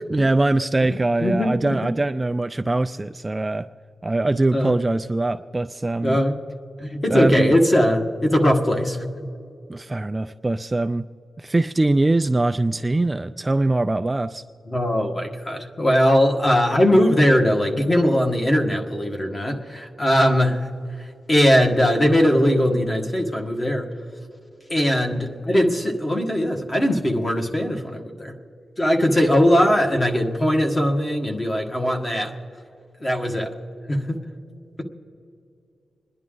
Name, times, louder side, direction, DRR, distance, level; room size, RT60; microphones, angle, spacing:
voice 1, 0.1-3.7 4.0-6.2 7.1-7.5 9.7-11.1 11.4-14.4 29.2-29.3, right 2 dB, 20° right, 8 dB, 0.3 m, -22 dB
voice 2, 1.2-1.8 4.5-4.7 6.0-6.4 6.8-9.1 14.7-20.7 21.3-23.9 24.7-28.3 28.8-32.3 33.0-33.5 33.9-34.2, equal, 25° left, 2 dB, 1.6 m, -20 dB
27.5 x 10.5 x 3.8 m, 2.6 s
wide cardioid pair, 130°, 0 cm